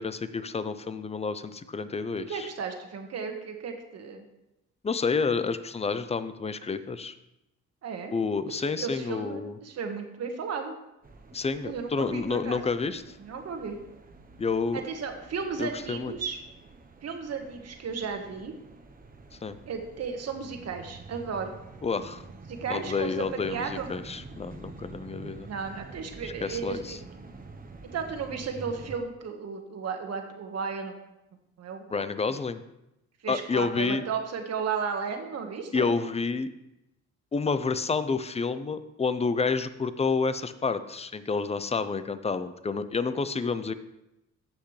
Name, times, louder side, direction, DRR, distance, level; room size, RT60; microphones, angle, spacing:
voice 1, 0.0-2.5 4.8-7.1 8.1-9.6 11.3-13.0 14.4-14.8 15.6-16.1 19.4-19.6 21.8-22.2 22.7-25.5 26.2-27.0 31.9-32.6 33.3-34.0 35.7-36.5 37.3-43.7, left 4 dB, 20° left, 12 dB, 0.6 m, -29 dB
voice 2, 2.3-4.2 7.8-8.1 8.5-10.7 11.6-12.6 13.2-13.8 14.7-16.4 17.0-18.5 19.7-21.5 22.5-23.9 25.4-27.0 27.9-30.9 31.6-32.1 33.2-35.9, right 5 dB, 55° right, 4 dB, 1.5 m, -34 dB
sound 1, 11.0-29.0, right 3 dB, 30° right, 1.0 m, -47 dB
15.0 x 5.8 x 3.3 m, 0.89 s
cardioid pair, 90°, 30 cm